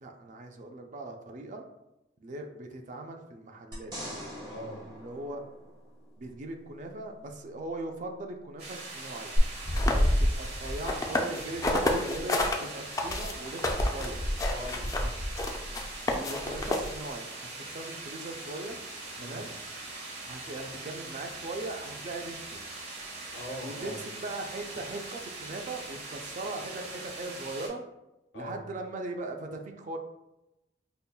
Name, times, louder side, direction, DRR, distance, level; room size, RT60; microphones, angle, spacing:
voice 1, 0.0-1.6 2.2-3.9 4.9-5.4 6.2-9.3 9.7-14.2 16.1-17.3 17.7-18.8 19.2-19.5 20.2-22.6 23.6-27.8 28.3-30.0, right 2 dB, 45° right, 4 dB, 0.4 m, -39 dB
sound 1, 3.7-6.2 9.3-9.4, equal, 25° right, 0.8 m, -42 dB
voice 2, 4.5-4.8 14.5-15.1 19.2-19.4 23.3-24.0 28.3-28.6, equal, 65° left, 1 dB, 0.6 m, -41 dB
sound 2, 8.6-27.7, right 2 dB, 65° right, 1.3 m, -42 dB
sound 3, 9.6-12.6 12.9-17.1, left 1 dB, 20° left, 0.4 m, -28 dB
5.2 x 2.2 x 2.3 m, 0.92 s
head